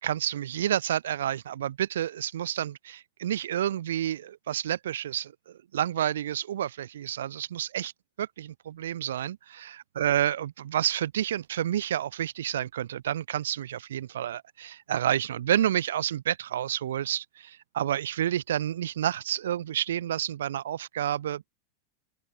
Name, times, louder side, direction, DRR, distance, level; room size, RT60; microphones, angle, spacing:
voice 1, 0.0-5.3 5.7-7.9 8.2-21.5, right 11 dB, 60° right, 3.9 m, -29 dB
open air
figure-of-eight pair, 90°, 0 cm